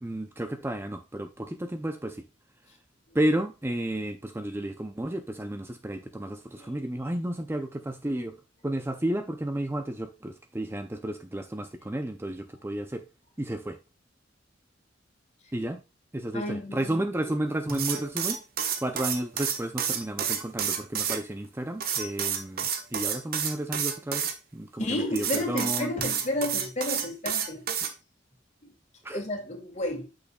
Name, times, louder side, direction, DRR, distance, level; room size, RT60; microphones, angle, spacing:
voice 1, 0.0-2.2 3.1-8.4 8.6-13.0 13.4-13.8 15.5-15.8 16.1-18.4 18.8-25.9 29.0-29.2, right 1 dB, 15° right, 0.5 m, -32 dB
voice 2, 16.3-17.3 17.7-17.8 24.8-27.6 29.1-30.0, left 1 dB, 40° left, 2.2 m, -32 dB
sound 1, 17.7-21.2 21.8-24.3 25.1-27.9, right 8 dB, 55° right, 1.1 m, -29 dB
8.4 x 6.4 x 2.3 m
head